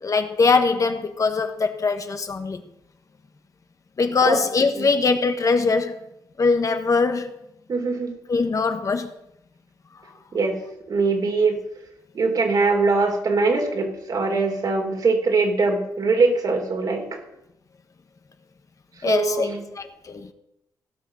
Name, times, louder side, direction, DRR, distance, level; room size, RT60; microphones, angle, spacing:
voice 1, 0.0-2.6 4.0-6.0 6.4-7.3 8.3-9.1 19.0-20.3, left 4 dB, 45° left, 1.3 m, -22 dB
voice 2, 7.7-8.1 10.3-10.6 10.9-11.6 12.1-17.2 19.0-19.6, right 3 dB, 55° right, 3.4 m, -22 dB
17.0 x 5.9 x 6.2 m
supercardioid pair, 60°, 8 cm